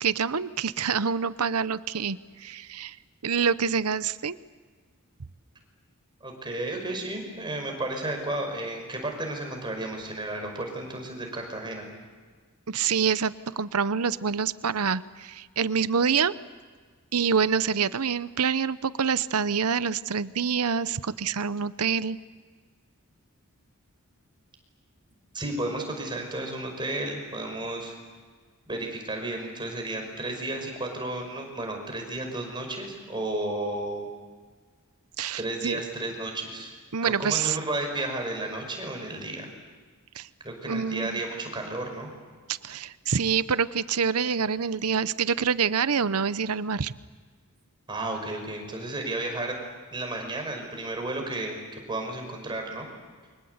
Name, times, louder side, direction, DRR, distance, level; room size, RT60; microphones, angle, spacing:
voice 1, 0.0-3.0 3.2-4.4 12.7-16.3 17.1-22.2 35.2-35.8 36.9-37.6 40.1-40.3 40.7-41.2 42.5-46.9, right 6 dB, 85° right, 15 dB, 0.8 m, -26 dB
voice 2, 6.2-11.9 25.3-28.0 28.7-34.1 35.4-36.7 37.0-39.5 40.4-42.1 47.9-49.6 49.9-51.6 51.9-52.9, right 2 dB, 20° right, 3 dB, 5.4 m, -33 dB
29.0 x 24.5 x 8.1 m, 1.5 s
head